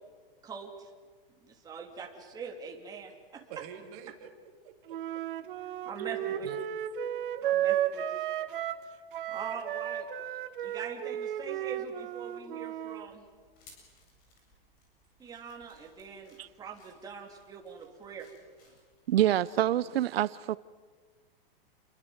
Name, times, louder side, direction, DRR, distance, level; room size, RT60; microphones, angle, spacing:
voice 1, 0.4-0.9 1.4-3.4 5.8-6.5 7.4-8.2 9.3-10.1 10.6-13.2 15.2-18.3, right 5 dB, 15° right, 1 dB, 3.0 m, -43 dB
voice 2, 3.5-4.3 4.6-5.5 6.1-6.7, right 8 dB, 35° right, 4 dB, 3.1 m, -49 dB
Wind instrument woodwind instrument, 4.9-8.8 9.1-13.1, right 11 dB, 60° right, 1.6 m, -33 dB
sound 1, 13.0-19.9, left 3 dB, 30° left, 7.9 m, -63 dB
voice 3, 19.1-20.6, right 12 dB, 85° right, 18 dB, 0.7 m, -26 dB
29.0 x 23.0 x 8.0 m, 1.5 s
supercardioid pair, 165°, 29 cm